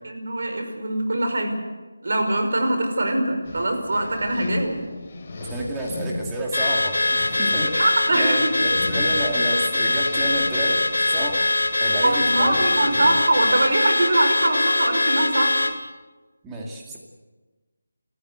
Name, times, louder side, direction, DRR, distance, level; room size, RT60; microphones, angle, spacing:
voice 1, 0.0-1.6 2.0-4.8 7.8-8.5 12.0-15.6, right 1 dB, 60° right, 5 dB, 5.5 m, -22 dB
sound 1, 3.4-13.7, left 2 dB, 30° left, 3.5 m, -36 dB
voice 2, 5.4-7.8 8.1-11.4 11.8-12.6 16.4-17.0, right 1 dB, 10° right, -1 dB, 2.4 m, -30 dB
Car / Alarm, 6.5-15.8, left 2 dB, 80° left, 2.6 m, -22 dB
29.5 x 14.5 x 8.1 m, 1.3 s
figure-of-eight pair, 175°, 0 cm